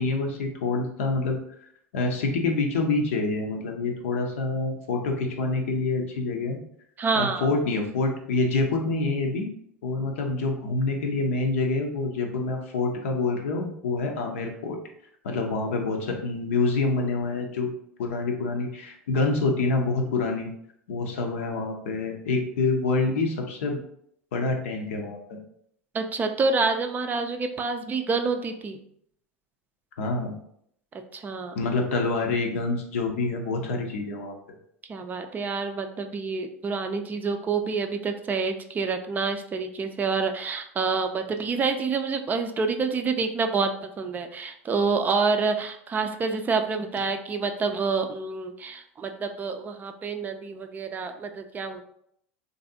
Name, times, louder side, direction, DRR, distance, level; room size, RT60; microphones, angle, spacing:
voice 1, 0.0-6.6 7.2-9.5 9.8-14.8 15.2-17.7 18.0-20.5 20.9-23.8 24.3-25.2 30.0-30.3 31.6-34.4, left 3 dB, 70° left, 2 dB, 0.6 m, -27 dB
voice 2, 7.0-7.6 25.9-28.8 30.9-31.6 34.9-43.7 44.0-51.8, right 4 dB, 25° right, 6 dB, 0.4 m, -27 dB
3.2 x 2.6 x 2.7 m, 0.69 s
hypercardioid pair, 85°, 7 cm